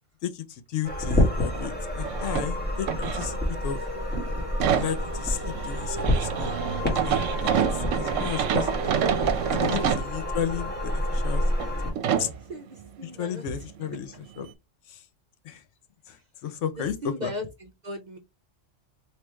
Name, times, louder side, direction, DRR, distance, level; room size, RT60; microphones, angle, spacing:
voice 1, 0.2-3.4 3.6-3.8 4.8-6.6 6.9-7.2 7.7-8.9 9.5-11.4 11.9-12.3 13.0-14.5 14.9-15.0 15.4-15.6 16.1-17.3, left 9 dB, 75° left, 0.9 m, -33 dB
sound 1, 0.8-11.9, left 1 dB, 10° left, 1.4 m, -28 dB
sound 2, 1.5-1.7 2.0-3.7 4.1-10.1 10.7-10.8 11.5-11.7 12.0-12.3 14.0-14.1 14.5-14.6, right 9 dB, 80° right, 0.9 m, -27 dB
voice 2, 12.2-13.4 16.8-18.2, left 1 dB, 50° right, 0.6 m, -37 dB
3.1 x 3.0 x 3.3 m
omnidirectional pair, 1.3 m